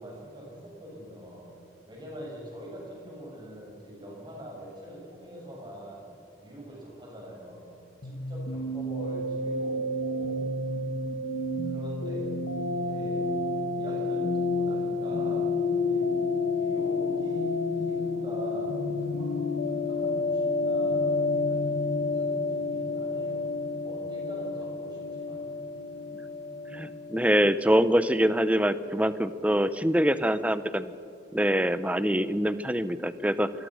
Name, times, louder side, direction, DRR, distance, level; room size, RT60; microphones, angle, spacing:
voice 1, 0.0-1.4 1.9-6.1 6.4-7.7 8.0-10.4 11.6-12.4 12.9-13.3 13.7-15.5 15.9-16.1 16.5-19.6 19.8-23.5 23.8-25.4, right 1 dB, 25° right, -3 dB, 7.6 m, -44 dB
sound 1, 8.0-27.5, left 3 dB, 90° left, 1.6 m, -30 dB
voice 2, 26.7-30.9 31.3-33.5, equal, 10° right, 13 dB, 0.7 m, -24 dB
25.0 x 21.0 x 6.4 m, 2.6 s
head